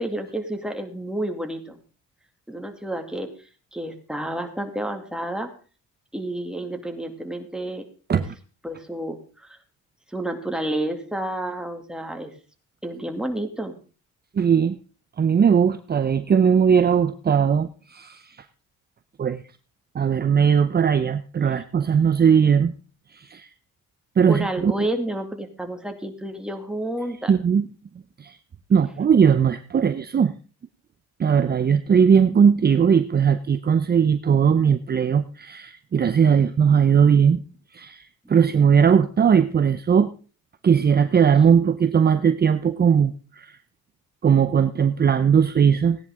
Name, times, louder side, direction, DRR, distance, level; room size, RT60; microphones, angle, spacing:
voice 1, 0.0-1.8 2.5-3.3 3.7-5.5 6.1-7.9 8.1-8.2 8.6-9.6 10.1-12.3 12.8-13.8 24.3-27.3, right 1 dB, 5° right, 4 dB, 2.4 m, -30 dB
voice 2, 14.4-14.8 15.2-18.4 19.2-19.4 19.9-22.7 23.1-23.5 24.2-24.7 27.3-27.6 28.2-28.4 28.7-30.3 31.2-37.4 37.7-40.1 40.6-43.5 44.2-46.0, right 7 dB, 35° right, 11 dB, 0.7 m, -19 dB
17.0 x 10.5 x 3.6 m, 0.37 s
cardioid pair, 90°, 30 cm